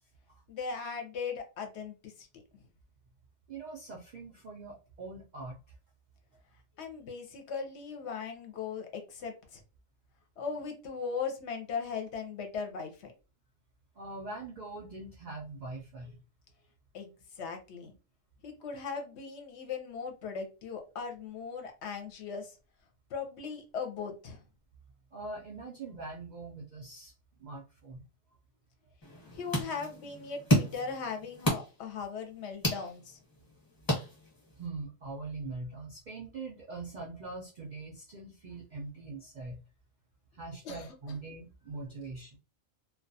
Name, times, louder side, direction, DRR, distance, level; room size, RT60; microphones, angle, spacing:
voice 1, 0.5-2.4 6.8-9.6 10.4-13.1 16.9-17.1 17.4-17.9 18.4-22.6 23.1-24.4 29.3-33.2 40.6-40.9, left 5 dB, 65° left, 4 dB, 0.8 m, -38 dB
voice 2, 3.5-5.7 14.0-16.2 25.1-27.1 27.4-28.1 34.5-39.6 40.3-42.4, right 3 dB, 65° right, -2 dB, 0.4 m, -42 dB
sound 1, 29.0-34.7, equal, 20° left, 0.9 m, -33 dB
2.3 x 2.2 x 2.6 m, 0.31 s
omnidirectional pair, 1.3 m